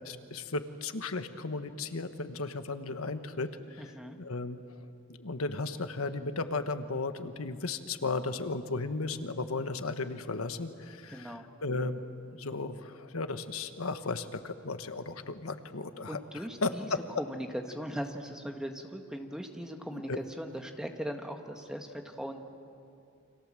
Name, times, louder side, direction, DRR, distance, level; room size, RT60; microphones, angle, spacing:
voice 1, 0.0-3.9 4.2-4.9 5.2-16.2 16.6-17.0 19.9-20.2, left 3 dB, 90° left, 9 dB, 1.3 m, -35 dB
voice 2, 3.8-4.2 11.1-11.5 16.1-16.9 17.2-22.4, equal, 5° right, 4 dB, 1.6 m, -39 dB
30.0 x 26.0 x 7.6 m, 2.5 s
head